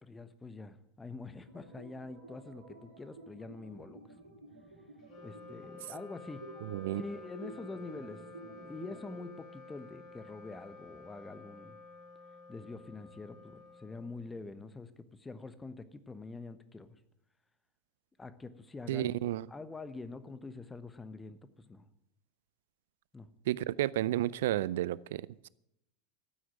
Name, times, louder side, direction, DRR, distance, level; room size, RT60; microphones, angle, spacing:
voice 1, 0.0-4.0 5.2-6.5 6.7-8.2 8.6-11.8 12.5-17.0 18.2-19.1 19.5-21.4 21.7-21.8 23.1-23.3, left 3 dB, 15° left, 1.1 m, -45 dB
sound 1, 1.5-9.3, right 2 dB, 85° right, 3.3 m, -51 dB
Wind instrument woodwind instrument, 5.0-14.6, left 3 dB, 45° left, 3.3 m, -52 dB
voice 2, 6.6-7.0 18.9-19.5 23.5-25.5, right 14 dB, 65° right, 0.4 m, -32 dB
13.0 x 9.3 x 9.2 m
figure-of-eight pair, 85°, 0 cm